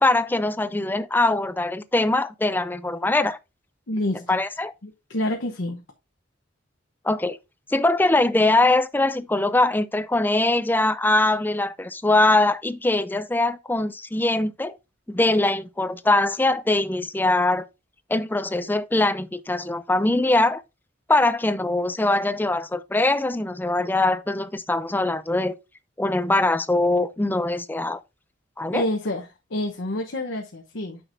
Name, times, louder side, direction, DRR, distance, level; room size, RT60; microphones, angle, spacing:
voice 1, 0.0-3.4 4.3-4.7 7.0-7.4 7.7-14.8 15.1-17.7 18.1-20.6 21.1-25.6 26.0-28.0 28.6-28.8, left 2 dB, 10° left, 0.4 m, -22 dB
voice 2, 3.9-4.4 4.8-5.8 28.7-31.0, left 1 dB, 80° left, 1.0 m, -28 dB
9.0 x 6.1 x 2.6 m
head